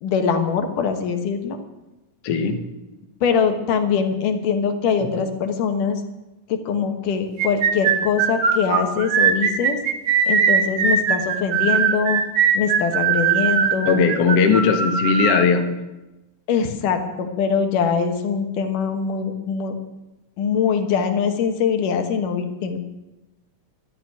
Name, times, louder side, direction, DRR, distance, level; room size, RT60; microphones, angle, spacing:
voice 1, 0.0-1.6 3.2-6.0 6.5-9.8 10.3-12.2 12.5-14.0 16.5-19.7 20.4-22.8, left 6 dB, 75° left, 6 dB, 2.8 m, -22 dB
voice 2, 2.2-2.6 13.9-15.7, left 5 dB, 60° left, 5 dB, 1.9 m, -18 dB
sound 1, 7.4-15.4, right 7 dB, 60° right, 2.3 m, -20 dB
13.0 x 8.8 x 9.6 m, 1.0 s
omnidirectional pair, 3.8 m